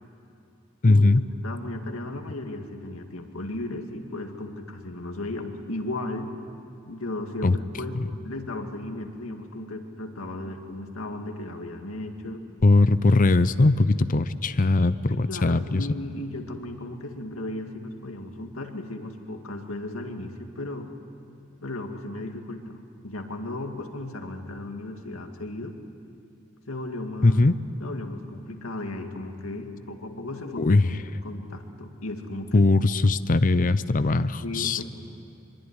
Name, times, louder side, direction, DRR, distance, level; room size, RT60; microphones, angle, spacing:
voice 1, 0.8-1.2 7.4-7.6 12.6-15.8 27.2-27.6 30.6-30.8 32.5-34.8, left 2 dB, 40° left, 13 dB, 0.7 m, -20 dB
voice 2, 1.4-6.3 6.9-12.4 15.1-20.9 21.6-25.8 26.7-27.4 27.8-30.8 31.2-32.7 34.4-34.8, left 1 dB, 80° left, 4 dB, 2.2 m, -35 dB
24.0 x 23.5 x 9.9 m, 2.6 s
head